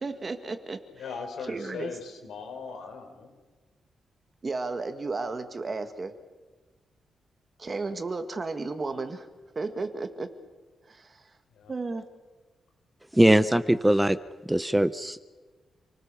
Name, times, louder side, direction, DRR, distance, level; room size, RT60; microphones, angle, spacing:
voice 1, 0.0-0.8 1.5-1.9 4.4-6.1 7.6-9.3 9.5-10.3 10.9-11.3 11.7-12.0, right 3 dB, 30° right, 9 dB, 1.8 m, -33 dB
voice 2, 0.9-3.3 11.5-11.7, left 5 dB, 85° left, 3 dB, 5.2 m, -39 dB
voice 3, 13.1-14.2 14.5-15.2, right 1 dB, 5° right, 14 dB, 0.6 m, -21 dB
28.5 x 19.5 x 6.9 m, 1.3 s
wide cardioid pair, 140°, 0 cm